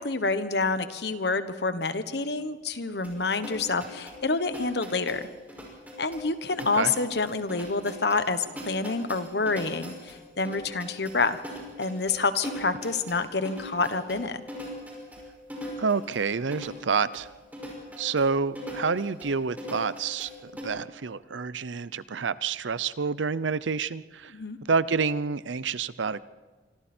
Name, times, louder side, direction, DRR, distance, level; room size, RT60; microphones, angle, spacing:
voice 1, 0.0-5.2 6.0-11.4 11.8-14.4 24.3-24.6, left 3 dB, 60° left, 11 dB, 1.3 m, -28 dB
sound 1, 3.0-20.6, left 1 dB, 10° right, 5.9 m, -41 dB
voice 2, 15.8-17.3 18.0-24.3 24.7-26.2, right 5 dB, 90° right, 17 dB, 0.7 m, -28 dB
25.5 x 25.5 x 4.5 m, 1.3 s
head